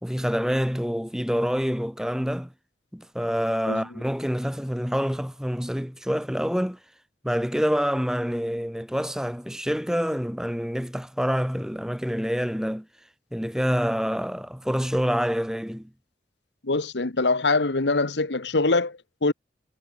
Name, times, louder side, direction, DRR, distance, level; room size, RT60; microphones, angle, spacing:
voice 1, 0.0-2.5 2.9-6.8 7.2-12.9 13.3-15.9, equal, 5° right, 2.3 m, -27 dB
voice 2, 16.6-19.3, left 3 dB, 80° left, 1.3 m, -24 dB
head